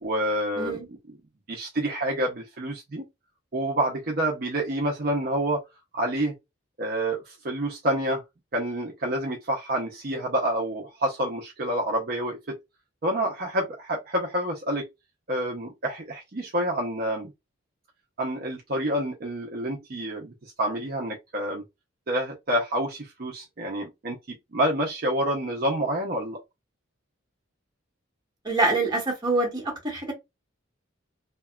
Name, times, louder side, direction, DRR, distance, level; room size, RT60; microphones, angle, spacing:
voice 1, 0.0-1.0 1.5-3.0 3.5-5.6 5.9-6.3 6.8-8.2 8.5-12.6 13.0-14.9 15.3-17.3 18.2-21.6 22.1-26.4, right 1 dB, 45° right, 0.5 m, -28 dB
voice 2, 28.4-30.1, right 2 dB, 20° right, 1.1 m, -25 dB
2.8 x 2.2 x 2.2 m
head